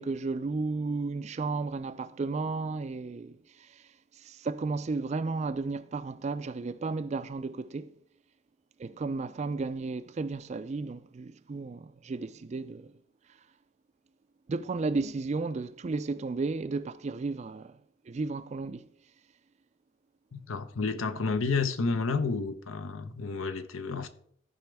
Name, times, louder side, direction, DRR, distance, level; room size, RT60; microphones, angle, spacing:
voice 1, 0.0-3.8 4.2-7.9 8.8-12.9 14.5-17.8 18.1-18.9, right 3 dB, 35° right, 0.3 m, -33 dB
voice 2, 20.3-24.1, left 4 dB, 80° left, 0.8 m, -30 dB
14.5 x 5.0 x 3.5 m
head